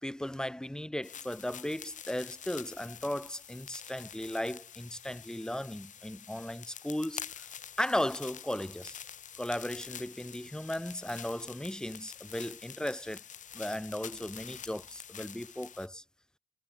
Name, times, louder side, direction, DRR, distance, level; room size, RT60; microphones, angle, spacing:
voice 1, 0.0-7.5 7.8-9.0 9.4-13.2 13.5-16.0, left 1 dB, 5° left, 3.7 m, -36 dB
sound 1, 1.0-15.9, left 9 dB, 45° left, 3.8 m, -47 dB
cardioid pair, 110°, 17 cm